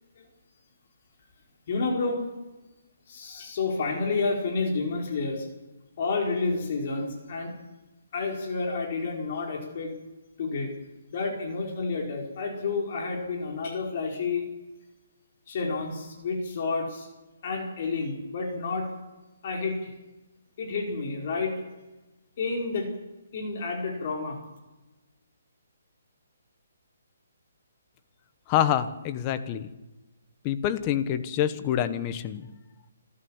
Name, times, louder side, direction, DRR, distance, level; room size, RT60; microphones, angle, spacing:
voice 1, 1.7-2.3 3.1-5.5 6.0-7.5 8.1-9.9 10.4-10.7 11.1-14.5 15.5-17.1 17.4-18.9 19.4-19.9 20.6-21.6 22.4-22.9 23.3-24.4, left 4 dB, 45° left, 2 dB, 4.7 m, -30 dB
voice 2, 28.5-29.7 30.4-32.4, left 10 dB, 20° left, 12 dB, 1.3 m, -26 dB
27.5 x 14.0 x 7.3 m, 1.1 s
hypercardioid pair, 165°, 0 cm